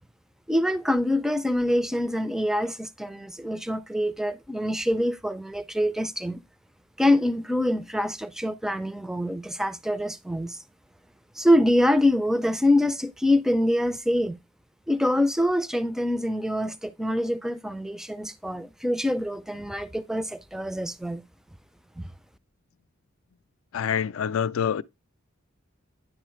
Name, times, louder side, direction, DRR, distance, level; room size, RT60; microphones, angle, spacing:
voice 1, 0.5-6.4 7.0-10.6 11.4-14.4 14.9-21.2 22.0-22.1, left 1 dB, ahead, 0.3 m, -25 dB
voice 2, 23.7-24.8, left 8 dB, 75° left, 0.4 m, -26 dB
10.0 x 4.0 x 3.1 m
head